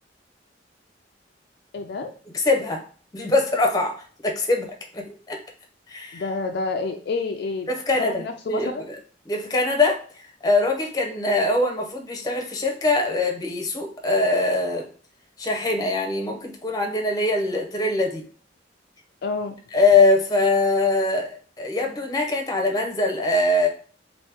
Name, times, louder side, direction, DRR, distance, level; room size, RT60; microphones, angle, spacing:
voice 1, 1.7-2.1 6.1-7.7 8.0-8.8 19.2-19.6, left 3 dB, 60° left, 4 dB, 0.4 m, -28 dB
voice 2, 2.3-2.8 3.1-4.7 4.9-5.4 5.9-6.2 7.7-9.0 9.3-10.0 10.4-14.9 15.4-18.2 19.7-23.7, left 2 dB, 20° left, 1 dB, 0.7 m, -22 dB
2.9 x 2.7 x 3.4 m, 0.43 s
head